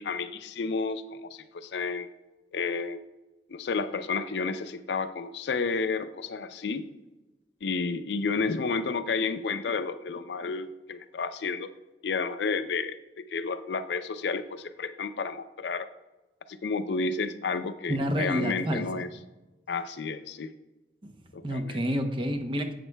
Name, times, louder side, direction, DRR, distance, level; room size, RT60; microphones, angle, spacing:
voice 1, 0.0-2.1 2.5-3.0 3.5-6.8 7.6-11.7 12.0-15.9 16.5-19.1 19.7-20.5 21.3-21.8, left 4 dB, 75° left, 11 dB, 0.4 m, -31 dB
voice 2, 17.9-19.0 21.0-21.2 21.4-22.7, equal, 30° right, 6 dB, 0.7 m, -29 dB
11.0 x 8.0 x 2.2 m, 1.1 s
head